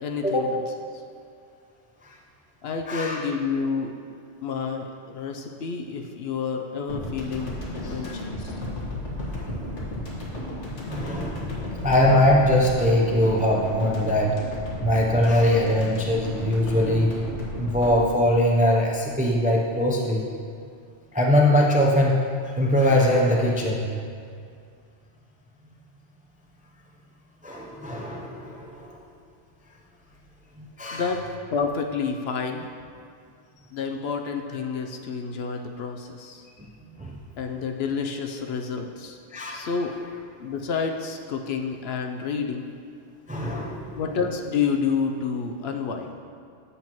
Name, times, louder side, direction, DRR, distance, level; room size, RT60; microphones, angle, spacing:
voice 1, 0.0-0.6 2.6-4.0 4.4-8.6 30.9-31.2 31.5-32.7 33.7-36.5 37.4-39.2 39.5-40.0 40.4-42.7 44.0-46.1, left 5 dB, 65° left, 4 dB, 0.8 m, -29 dB
voice 2, 2.9-3.2 7.8-8.1 9.3-9.6 10.9-14.3 14.8-17.1 17.6-20.2 21.1-22.2 22.4-23.9 27.4-29.0 30.6-31.0 36.6-36.7 37.0-37.2 39.3-39.8 43.3-44.0, left 1 dB, 10° right, -1 dB, 0.4 m, -22 dB
sound 1, 6.9-19.4, left 1 dB, 85° left, 1.7 m, -34 dB
8.3 x 7.2 x 3.0 m, 2.3 s
omnidirectional pair, 1.2 m